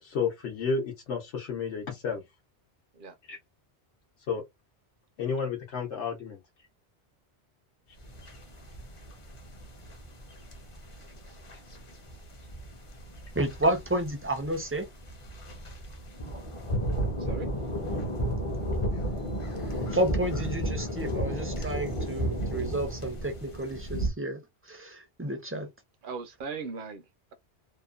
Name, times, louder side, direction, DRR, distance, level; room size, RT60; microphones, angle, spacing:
voice 1, 0.0-2.2 3.3-3.4 4.3-4.4 5.2-6.4, left 5 dB, 85° left, 1.0 m, -31 dB
sound 1, 8.0-24.1, right 1 dB, 35° left, 0.6 m, -33 dB
voice 2, 13.3-14.9 19.9-24.4 24.7-25.7, right 1 dB, 20° right, 0.4 m, -31 dB
voice 3, 17.2-17.5 26.0-27.3, right 5 dB, 60° right, 0.6 m, -39 dB
2.8 x 2.1 x 2.3 m
omnidirectional pair, 1.2 m